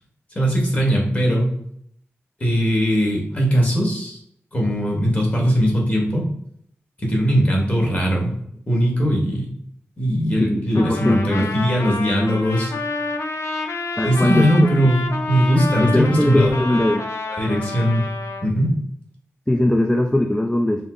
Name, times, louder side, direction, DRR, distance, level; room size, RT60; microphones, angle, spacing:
voice 1, 0.3-1.6 2.4-4.2 4.5-6.3 7.0-8.4 8.7-9.5 10.0-12.7 14.0-16.8 17.3-18.0 18.4-18.7, equal, 30° left, -2 dB, 1.4 m, -19 dB
voice 2, 10.4-11.5 14.0-14.7 15.8-17.1 19.5-20.9, left 1 dB, 10° left, 2 dB, 0.3 m, -20 dB
Trumpet, 10.7-18.5, left 3 dB, 80° left, 0.5 m, -29 dB
5.5 x 2.0 x 3.7 m, 0.68 s
wide cardioid pair, 110°, 5 cm